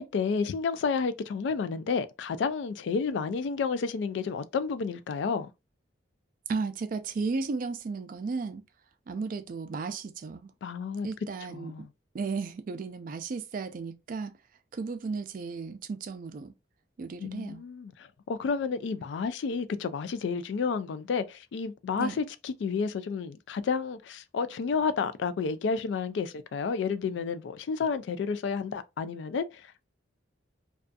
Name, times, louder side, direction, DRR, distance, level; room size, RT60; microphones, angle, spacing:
voice 1, 0.0-5.5 10.6-11.1 11.5-11.9 17.2-29.8, left 5 dB, 70° left, 0.3 m, -31 dB
voice 2, 6.5-8.6 9.1-10.5 11.0-11.9 12.1-14.3 14.7-16.5 17.0-17.6 22.0-22.2, right 4 dB, 45° right, 0.3 m, -34 dB
2.5 x 2.3 x 2.2 m
head